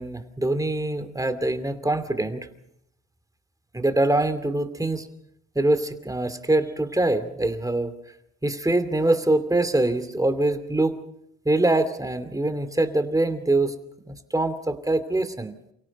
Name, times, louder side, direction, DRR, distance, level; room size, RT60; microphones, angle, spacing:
voice 1, 0.0-2.5 3.7-5.1 5.5-7.9 8.4-11.0 11.4-13.7 14.1-15.6, right 2 dB, 10° right, 10 dB, 2.6 m, -24 dB
29.0 x 17.0 x 5.3 m, 0.75 s
cardioid pair, 90°, 30 cm